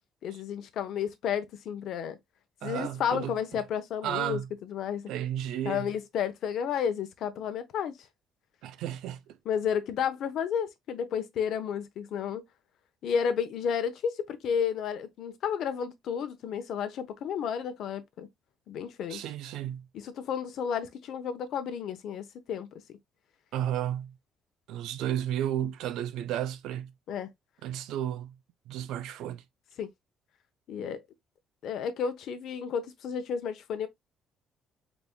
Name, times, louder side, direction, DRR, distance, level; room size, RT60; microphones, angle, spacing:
voice 1, 0.2-2.2 2.6-5.1 5.6-8.0 9.5-12.4 13.0-18.3 18.7-19.2 19.9-23.0 27.1-27.3 29.8-29.9 30.7-31.0 31.6-33.9, left 7 dB, 65° left, 0.7 m, -32 dB
voice 2, 2.6-3.6 4.0-4.5 5.1-5.9 8.6-9.4 19.1-19.9 23.5-24.2 24.7-26.9 27.6-28.4 28.7-29.4, right 11 dB, 85° right, 0.5 m, -33 dB
4.1 x 3.5 x 2.2 m
cardioid pair, 145°, 0 cm